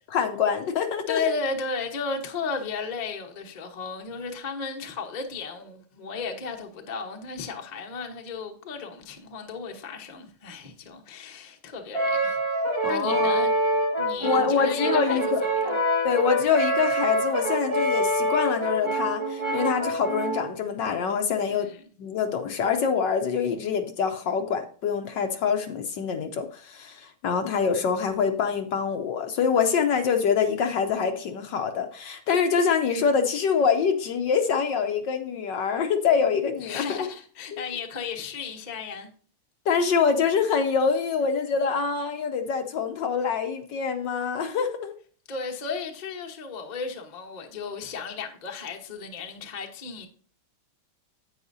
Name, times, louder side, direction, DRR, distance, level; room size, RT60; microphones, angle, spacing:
voice 1, 0.1-1.2 12.8-13.4 14.2-15.4 16.0-21.7 22.0-37.1 37.5-37.6 39.7-44.9, left 6 dB, 65° left, 1.2 m, -25 dB
voice 2, 1.1-15.3 15.6-15.7 21.5-21.8 36.6-39.1 45.3-50.1, left 4 dB, 35° left, 0.7 m, -34 dB
Brass instrument, 11.9-20.5, right 1 dB, 15° right, 1.7 m, -26 dB
9.8 x 8.6 x 2.6 m
omnidirectional pair, 2.4 m